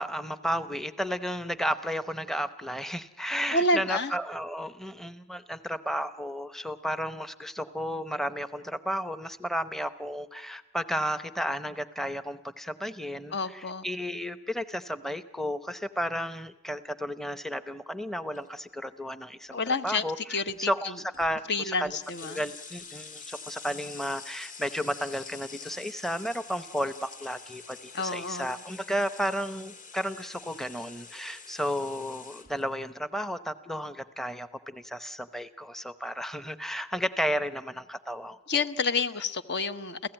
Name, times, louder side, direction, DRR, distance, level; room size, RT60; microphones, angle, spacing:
voice 1, 0.0-38.4, equal, ahead, 12 dB, 0.8 m, -33 dB
voice 2, 3.5-4.1 13.3-13.9 19.5-20.9 21.5-22.4 27.9-28.5 38.5-40.1, left 3 dB, 55° left, 12 dB, 1.0 m, -29 dB
sound 1, 18.3-18.7 20.5-20.6 21.1-21.4 21.8-32.7, left 5 dB, 40° left, 1.5 m, -46 dB
28.5 x 16.0 x 8.9 m, 0.94 s
head